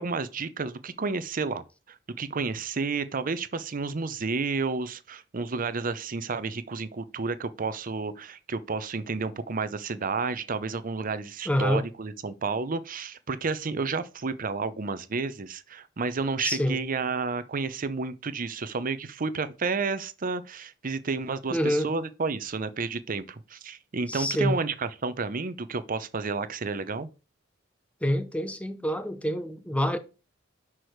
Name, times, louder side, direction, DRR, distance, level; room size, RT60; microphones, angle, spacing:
voice 1, 0.0-27.1, right 4 dB, 45° right, 0.7 m, -31 dB
voice 2, 11.5-11.8 16.4-16.8 21.5-21.9 24.1-24.6 28.0-30.0, equal, 5° left, 0.7 m, -26 dB
6.1 x 4.9 x 4.6 m
head